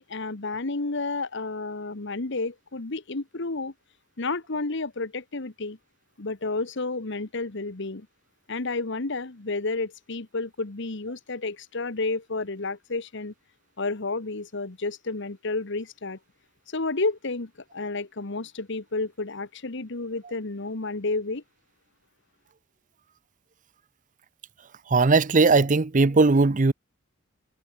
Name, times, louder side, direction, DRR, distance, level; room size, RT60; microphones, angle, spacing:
voice 1, 0.0-3.7 4.2-5.8 6.2-8.1 8.5-13.3 13.8-16.2 16.7-21.4, left 3 dB, 60° left, 1.4 m, -31 dB
voice 2, 24.9-26.7, right 3 dB, 40° right, 0.7 m, -19 dB
head